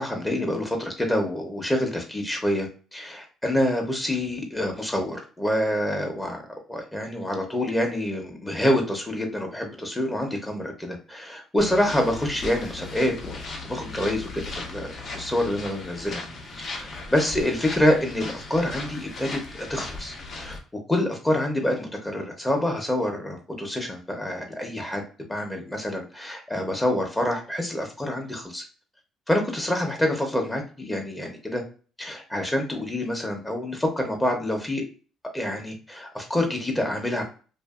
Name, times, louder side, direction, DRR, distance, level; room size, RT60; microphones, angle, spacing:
voice 1, 0.0-6.4 6.7-16.2 16.6-20.6 20.9-25.0 25.3-28.6 29.3-31.6 32.0-34.8 35.3-37.2, left 1 dB, 15° left, 2 dB, 0.7 m, -27 dB
sound 1, 11.6-20.6, left 3 dB, 60° left, 0.7 m, -37 dB
2.5 x 2.4 x 2.3 m, 0.37 s
supercardioid pair, 75°, 0 cm